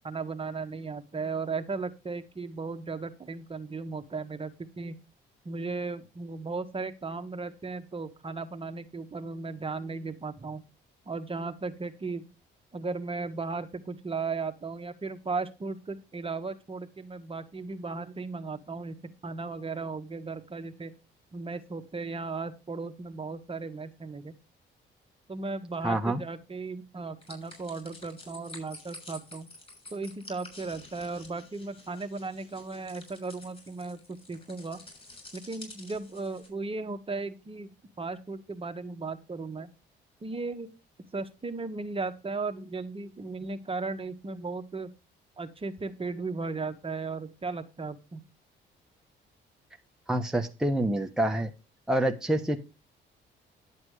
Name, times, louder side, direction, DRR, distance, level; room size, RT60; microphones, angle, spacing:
voice 1, 0.0-4.9 5.4-10.6 11.1-12.3 12.7-19.0 19.2-20.9 21.3-24.4 25.3-29.5 29.9-34.8 35.3-37.7 38.0-39.7 40.2-40.7 41.1-44.9 45.4-48.2, right 4 dB, 30° right, 8 dB, 1.4 m, -36 dB
voice 2, 25.8-26.2 50.1-51.5 51.9-52.6, right 1 dB, 5° right, 3 dB, 1.1 m, -27 dB
sound 1, 27.2-36.5, left 2 dB, 30° left, 6.8 m, -50 dB
11.0 x 7.5 x 4.9 m, 0.29 s
cardioid pair, 90°, 20 cm